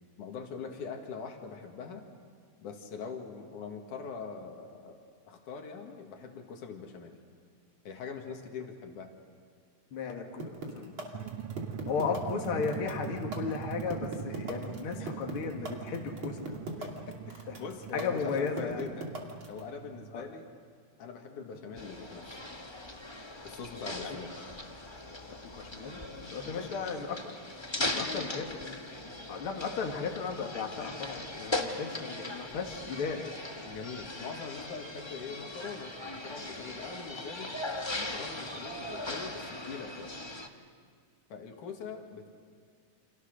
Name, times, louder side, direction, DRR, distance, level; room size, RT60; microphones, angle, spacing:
voice 1, 0.2-2.0 2.6-5.0 5.3-7.2 7.8-9.1 14.9-15.2 16.8-19.1 19.5-20.5 21.0-22.4 23.4-24.3 26.4-26.7 27.8-28.4 33.7-37.5 37.9-40.1 41.3-42.3, left 5 dB, 80° left, 3 dB, 3.4 m, -42 dB
voice 2, 9.9-11.3 11.9-16.5 17.5-17.6 17.9-18.9 20.1-20.3 24.0-24.2 25.3-27.2 27.9-28.7 29.3-33.3, left 5 dB, 45° left, 2 dB, 2.8 m, -35 dB
sound 1, 10.4-19.6, right 3 dB, 40° right, 3.3 m, -39 dB
sound 2, 11.1-20.3, right 9 dB, 70° right, 1.7 m, -42 dB
sound 3, 21.7-40.5, left 2 dB, 25° left, 0.5 m, -39 dB
29.5 x 27.0 x 6.6 m, 2.1 s
omnidirectional pair, 3.6 m